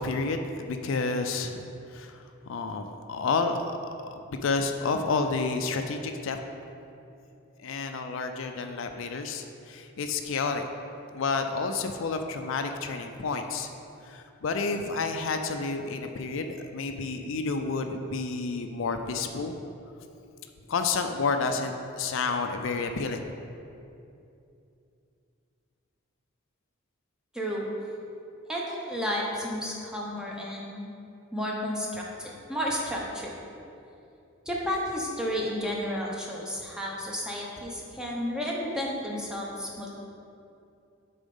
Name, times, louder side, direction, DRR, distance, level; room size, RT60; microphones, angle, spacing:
voice 1, 0.0-2.2 2.5-3.8 4.1-6.4 7.6-10.6 11.1-13.7 14.0-19.6 20.7-23.3, left 4 dB, 65° left, 6 dB, 0.4 m, -30 dB
voice 2, 27.3-27.7 28.5-30.9 31.3-33.3 34.5-39.9, equal, 5° right, -3 dB, 0.8 m, -32 dB
7.1 x 4.2 x 5.4 m, 2.6 s
head